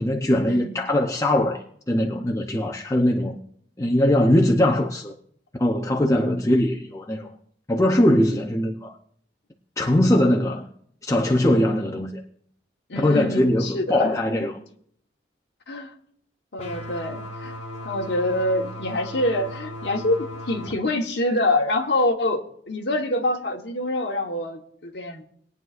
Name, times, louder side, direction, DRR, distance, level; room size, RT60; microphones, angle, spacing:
voice 1, 0.0-3.4 3.8-5.1 5.5-7.3 7.7-8.9 9.8-10.7 11.0-12.2 12.9-14.5, left 1 dB, 15° left, 0.7 m, -21 dB
voice 2, 12.9-14.1 14.4-14.5 15.7-15.9 16.5-17.5 17.8-25.2, left 1 dB, 65° left, 1.3 m, -25 dB
sound 1, 16.6-20.7, equal, 35° left, 2.3 m, -36 dB
21.5 x 9.3 x 2.5 m
head